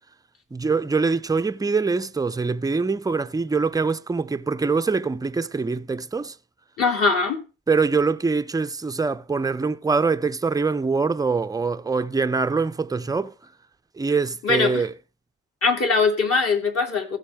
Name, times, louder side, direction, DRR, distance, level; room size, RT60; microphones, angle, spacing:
voice 1, 0.5-6.4 7.7-13.3 13.9-14.9, right 4 dB, 10° right, 0.5 m, -24 dB
voice 2, 6.8-7.4 14.4-14.8 15.6-17.2, left 4 dB, 50° left, 2.8 m, -21 dB
16.0 x 6.4 x 3.6 m
cardioid pair, 90°, 30 cm